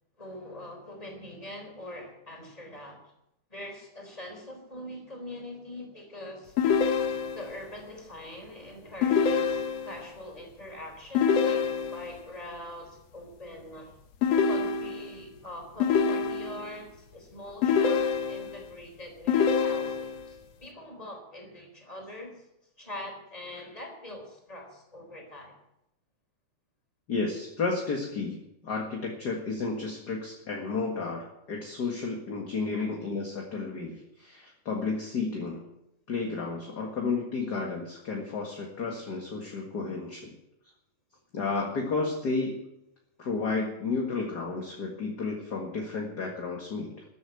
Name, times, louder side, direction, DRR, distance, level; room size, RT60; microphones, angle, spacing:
voice 1, 0.2-3.0 3.5-6.5 7.3-13.9 14.4-22.5 22.8-25.6 32.7-32.9, left 1 dB, 10° left, 2 dB, 3.8 m, -43 dB
sound 1, 6.6-7.6 9.0-10.1 11.2-12.2 14.2-15.2 15.8-16.8 17.6-18.7 19.3-20.3, left 6 dB, 70° left, 1.8 m, -26 dB
voice 2, 27.1-35.7 36.1-40.4 41.3-42.7 43.2-47.0, left 4 dB, 40° left, 0 dB, 2.0 m, -32 dB
14.0 x 8.5 x 8.2 m, 0.82 s
omnidirectional pair, 3.4 m